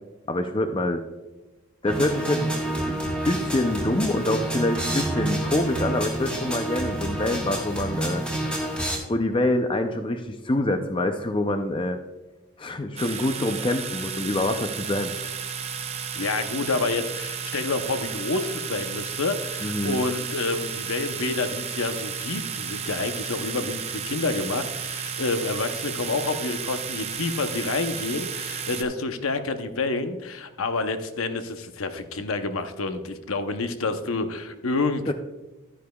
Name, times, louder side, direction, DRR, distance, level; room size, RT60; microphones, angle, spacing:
voice 1, 0.3-1.0 1.8-8.2 9.1-12.0 12.6-15.3 19.6-20.0 35.1-35.2, left 1 dB, 25° left, 7 dB, 0.4 m, -26 dB
sound 1, 1.8-9.0, right 1 dB, 5° left, 1.4 m, -28 dB
sound 2, 13.0-28.8, right 7 dB, 30° right, 0.6 m, -33 dB
voice 2, 16.1-35.1, left 3 dB, 75° left, 8 dB, 0.7 m, -28 dB
11.5 x 9.9 x 2.3 m, 1.1 s
head